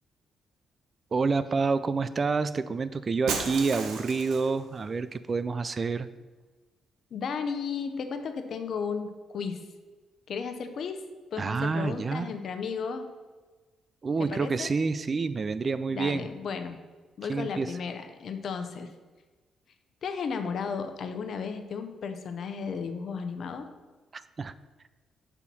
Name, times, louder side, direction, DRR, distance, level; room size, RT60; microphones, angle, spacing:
voice 1, 1.1-6.1 11.4-12.3 14.0-16.3 17.3-17.8 24.1-24.5, right 4 dB, 40° right, 14 dB, 0.3 m, -28 dB
Shatter, 3.3-4.6, right 5 dB, 80° right, 0.8 m, -33 dB
voice 2, 7.1-9.6 10.3-11.0 11.3-13.1 14.3-14.7 15.9-16.8 17.2-18.9 20.0-23.7, left 5 dB, 65° left, 8 dB, 0.7 m, -34 dB
5.6 x 4.1 x 6.1 m, 1.3 s
supercardioid pair, 60°, 0 cm